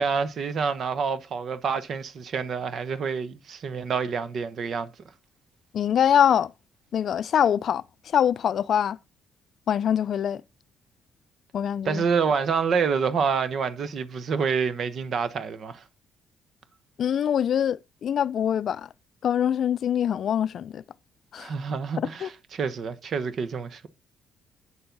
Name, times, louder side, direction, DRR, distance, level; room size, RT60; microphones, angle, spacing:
voice 1, 0.0-4.9 11.8-15.8 21.4-23.9, right 5 dB, 55° right, 1.1 m, -27 dB
voice 2, 5.7-6.5 6.9-9.0 9.7-10.4 11.5-12.0 17.0-18.9 19.2-20.8 21.3-21.5 22.0-22.3, left 9 dB, 60° left, 0.4 m, -24 dB
8.7 x 6.9 x 4.0 m
cardioid pair, 90°, 0 cm